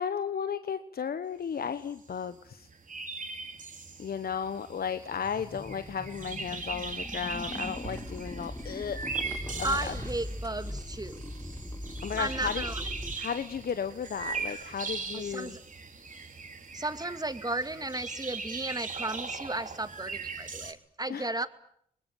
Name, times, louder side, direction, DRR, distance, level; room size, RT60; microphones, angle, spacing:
voice 1, 0.0-2.7 4.0-9.0 9.6-9.9 12.0-12.6 13.2-15.6 21.1-21.3, left 7 dB, 60° left, 11 dB, 1.2 m, -34 dB
sound 1, 1.9-2.0 2.2-2.3 2.5-20.7, right 4 dB, 50° right, 3.6 m, -40 dB
sound 2, 5.2-13.1, left 1 dB, 15° left, 2.4 m, -40 dB
sound 3, 7.2-15.7, right 5 dB, 75° right, 3.1 m, -53 dB
voice 2, 9.6-11.2 12.2-12.8 15.1-15.6 16.7-21.5, right 2 dB, 20° right, 10 dB, 2.6 m, -34 dB
25.5 x 20.5 x 9.1 m, 0.69 s
supercardioid pair, 40°, 17 cm